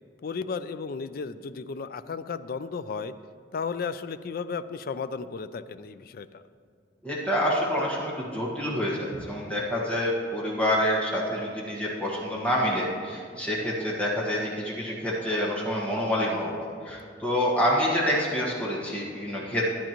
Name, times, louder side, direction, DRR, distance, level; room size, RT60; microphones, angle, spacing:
voice 1, 0.2-3.1 3.5-6.4, left 5 dB, 55° left, 12 dB, 0.4 m, -34 dB
voice 2, 7.0-16.5 16.8-19.7, equal, 10° left, -5 dB, 1.5 m, -27 dB
13.5 x 9.9 x 3.0 m, 2.1 s
head